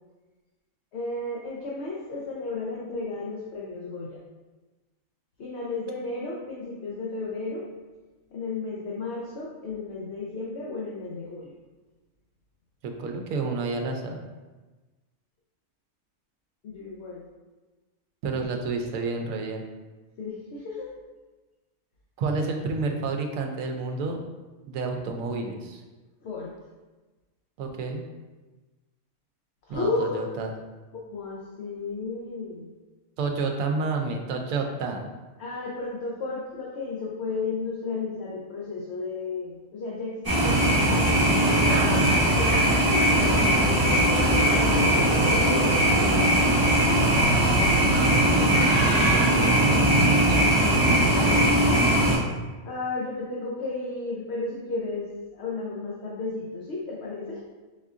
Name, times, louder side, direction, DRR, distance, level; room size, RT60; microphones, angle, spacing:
voice 1, 0.9-4.1 5.4-7.6 8.3-11.5 16.6-17.2 20.2-20.9 26.2-26.5 29.7-30.3 30.9-32.7 35.4-42.1 42.4-46.8 50.8-52.2 52.7-57.4, left 3 dB, 60° left, -4 dB, 0.8 m, -34 dB
voice 2, 12.8-14.2 18.2-19.6 22.2-24.2 24.7-25.8 27.6-28.0 29.7-30.5 33.2-35.1 41.7-42.0 47.9-50.4, right 3 dB, 70° right, 3 dB, 0.9 m, -30 dB
Night Sounds August, 40.2-52.1, right 1 dB, 15° right, 1.1 m, -20 dB
4.2 x 3.6 x 2.4 m, 1.2 s
omnidirectional pair, 1.5 m